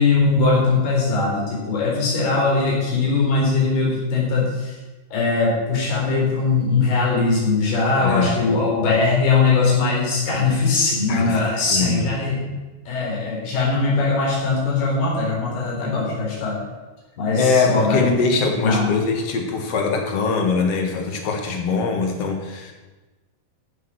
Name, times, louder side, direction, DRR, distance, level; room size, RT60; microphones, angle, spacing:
voice 1, 0.0-4.7 5.1-12.4 12.9-16.6 17.2-18.1 18.6-19.0, left 4 dB, 85° left, -4 dB, 5.9 m, -20 dB
voice 2, 8.0-8.3 11.1-12.1 17.4-22.7, left 4 dB, 50° left, 2 dB, 2.2 m, -22 dB
14.5 x 7.1 x 6.2 m, 1.2 s
omnidirectional pair, 4.4 m